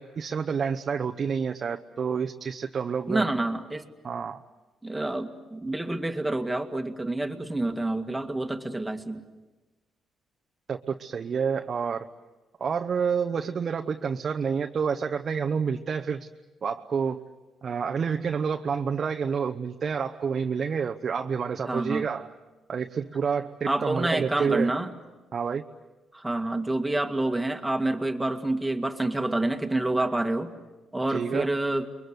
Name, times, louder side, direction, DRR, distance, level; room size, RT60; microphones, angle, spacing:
voice 1, 0.0-3.3 4.0-4.4 10.7-12.1 12.6-16.3 16.6-17.3 17.6-22.3 22.7-24.7 25.3-25.6 31.1-31.5, right 6 dB, 50° right, 5 dB, 0.9 m, -29 dB
voice 2, 3.1-3.8 4.8-9.2 21.7-22.1 23.7-24.9 26.1-30.5 30.9-31.9, right 2 dB, 10° right, 5 dB, 2.1 m, -28 dB
30.0 x 22.5 x 8.1 m, 1.1 s
cardioid pair, 90°, 0 cm